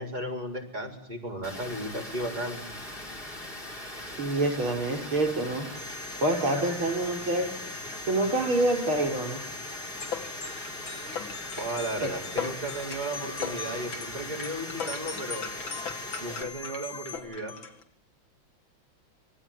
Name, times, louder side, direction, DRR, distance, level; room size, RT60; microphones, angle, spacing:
voice 1, 0.0-2.6 11.6-15.5 16.2-17.5, right 1 dB, 20° right, 0 dB, 5.0 m, -35 dB
Water, 1.4-16.4, left 1 dB, 25° left, 4.6 m, -40 dB
voice 2, 4.0-5.7 6.2-7.5 8.1-9.4 12.0-12.1, right 2 dB, 85° right, 4 dB, 5.8 m, -26 dB
sound 1, 5.7-17.2, left 3 dB, 55° left, 8.3 m, -44 dB
sound 2, 10.0-17.8, left 6 dB, 75° left, 2.9 m, -38 dB
27.0 x 20.0 x 9.2 m, 0.71 s
omnidirectional pair, 2.2 m